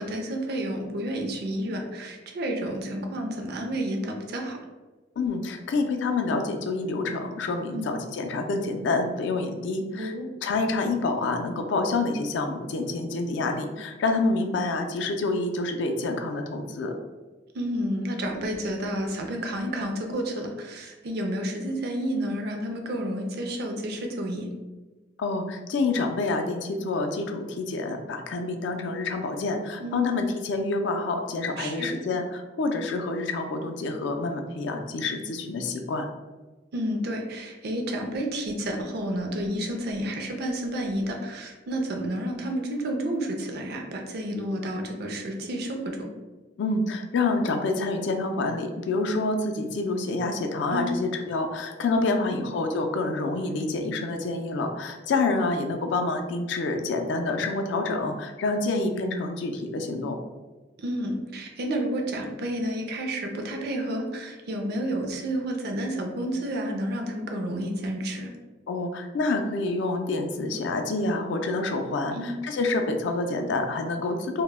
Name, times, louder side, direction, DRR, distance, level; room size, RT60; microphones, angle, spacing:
voice 1, 0.0-4.6 7.7-7.9 10.0-10.3 17.5-24.5 29.8-30.1 31.6-32.0 36.7-46.1 50.7-51.0 52.1-52.6 60.8-68.3 72.1-72.4, right 1 dB, 55° right, 3 dB, 0.4 m, -30 dB
voice 2, 5.2-10.1 10.4-16.9 25.2-36.1 46.6-60.2 68.7-74.4, left 3 dB, 65° left, 5 dB, 0.3 m, -27 dB
2.1 x 2.0 x 3.2 m, 1.2 s
head